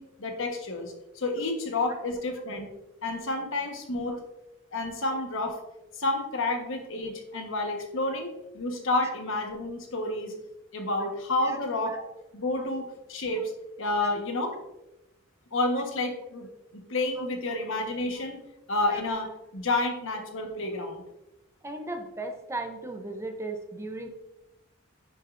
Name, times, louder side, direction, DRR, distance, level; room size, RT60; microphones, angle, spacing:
voice 1, 0.0-2.7 3.0-4.2 4.7-5.6 5.9-10.3 10.7-12.0 12.3-13.5 13.8-14.5 15.5-16.5 16.9-18.4 18.7-21.0, left 2 dB, 65° left, 3 dB, 1.3 m, -30 dB
voice 2, 21.6-24.1, right 2 dB, 15° right, 4 dB, 0.7 m, -36 dB
9.9 x 6.4 x 2.6 m, 0.96 s
head